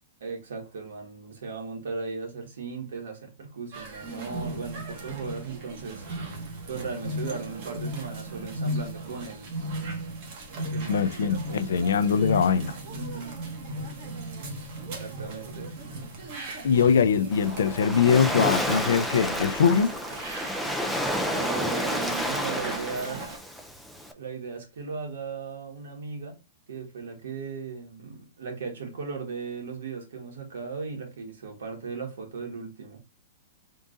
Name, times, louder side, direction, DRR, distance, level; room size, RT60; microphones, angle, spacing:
voice 1, 0.2-6.3 6.7-9.5 10.5-11.9 12.9-13.3 14.8-15.7 21.2-23.2 24.1-26.4 26.7-33.0, right 5 dB, 80° right, 1.6 m, -37 dB
sound 1, 3.7-23.4, right 1 dB, 35° right, 1.0 m, -37 dB
voice 2, 10.9-12.8 16.6-19.9, left 6 dB, 80° left, 0.4 m, -22 dB
Waves surf, 17.3-24.1, equal, ahead, 0.3 m, -30 dB
3.7 x 2.5 x 3.8 m
hypercardioid pair, 170°, 0 cm